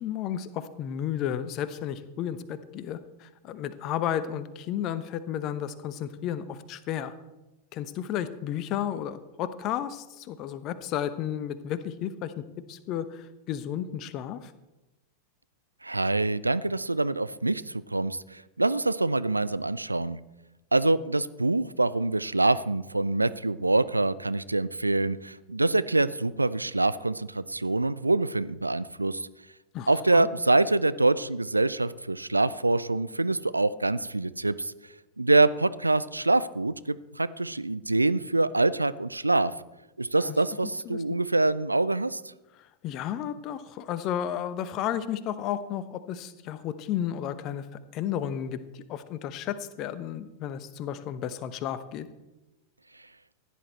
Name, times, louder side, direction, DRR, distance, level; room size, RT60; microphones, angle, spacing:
voice 1, 0.0-7.1 7.7-12.4 12.7-14.5 29.7-30.3 40.3-40.4 40.6-41.0 42.8-47.7 47.9-52.1, left 10 dB, 35° left, 13 dB, 0.9 m, -33 dB
voice 2, 15.8-20.2 20.7-29.3 29.9-34.7 35.2-39.5 40.0-42.2, right 2 dB, 85° right, 16 dB, 0.4 m, -25 dB
15.5 x 10.5 x 4.4 m, 1.0 s
figure-of-eight pair, 90°, 0 cm